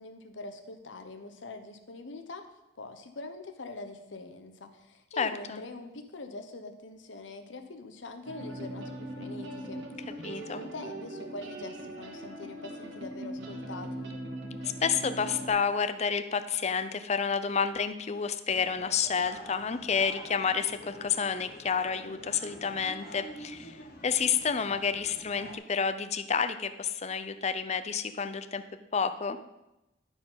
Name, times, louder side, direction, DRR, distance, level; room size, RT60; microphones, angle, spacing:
voice 1, 0.0-2.5 2.8-14.2, left 2 dB, 70° left, 6 dB, 1.0 m, -44 dB
voice 2, 5.2-5.6 10.2-10.6 14.8-23.8 24.0-28.6 28.9-29.4, left 6 dB, 35° left, 10 dB, 0.5 m, -30 dB
sound 1, 8.3-15.5, right 1 dB, 60° right, 1.6 m, -40 dB
sound 2, 18.5-25.6, equal, 50° left, 1.3 m, -47 dB
11.5 x 4.6 x 5.6 m, 0.94 s
head